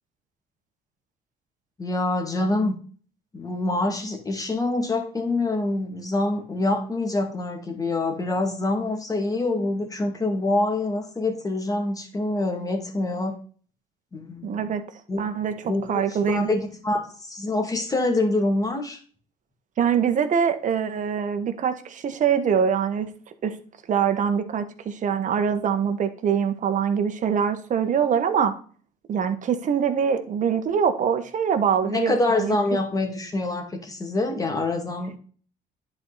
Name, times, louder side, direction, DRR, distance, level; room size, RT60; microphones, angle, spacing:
voice 1, 1.8-2.8 3.3-13.4 14.1-14.7 15.1-15.2 15.7-19.0 31.8-35.2, left 2 dB, 20° left, 4 dB, 2.2 m, -26 dB
voice 2, 14.4-14.8 15.2-15.5 15.9-16.5 19.8-23.1 23.4-23.6 23.9-28.5 29.1-32.6, right 7 dB, 50° right, 8 dB, 1.4 m, -23 dB
10.5 x 4.6 x 4.1 m, 0.42 s
cardioid pair, 110°, 17 cm